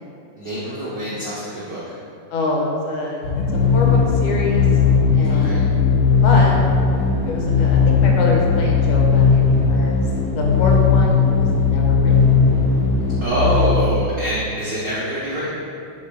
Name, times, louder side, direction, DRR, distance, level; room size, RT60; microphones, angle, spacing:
voice 1, 0.4-2.0 5.3-5.6 13.2-15.5, right 1 dB, 80° right, -9 dB, 1.0 m, -25 dB
voice 2, 2.3-4.7 5.1-5.6 6.2-6.5 7.3-10.0 10.4-12.4, left 2 dB, 80° left, -1 dB, 2.3 m, -25 dB
sound 1, 3.2-14.0, left 5 dB, 55° left, 2.4 m, -17 dB
7.5 x 4.3 x 3.3 m, 2.6 s
omnidirectional pair, 3.6 m